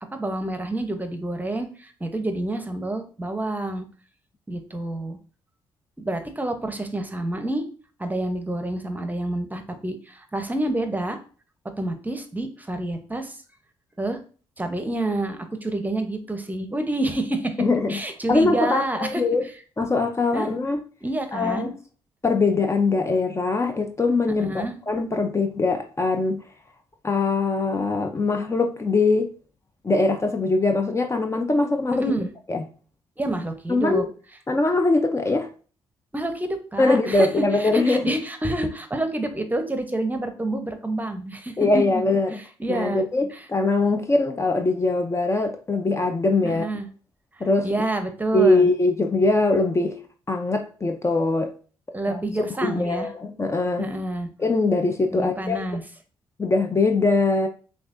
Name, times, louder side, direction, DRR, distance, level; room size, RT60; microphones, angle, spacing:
voice 1, 0.1-3.9 4.5-5.2 6.0-7.6 8.0-11.2 11.8-13.4 14.0-14.2 14.6-17.5 17.9-19.2 20.3-20.5 21.0-21.7 24.4-24.7 31.9-32.3 33.2-34.0 36.1-42.0 42.3-43.5 46.4-46.9 47.6-48.7 51.9-53.1 53.8-54.3 55.1-55.8, right 1 dB, 15° right, 0.8 m, -28 dB
voice 2, 17.6-17.9 18.3-19.4 19.8-20.8 21.3-21.7 22.2-26.4 27.0-29.3 29.8-32.1 32.5-32.7 33.7-34.1 34.5-35.5 36.8-38.1 41.6-42.4 42.7-46.7 47.4-47.7 48.3-50.0 50.3-51.5 52.1-52.2 52.6-53.9 54.4-55.6 56.4-57.5, left 3 dB, 25° left, 0.6 m, -22 dB
6.0 x 2.4 x 2.6 m
supercardioid pair, 55°, 10 cm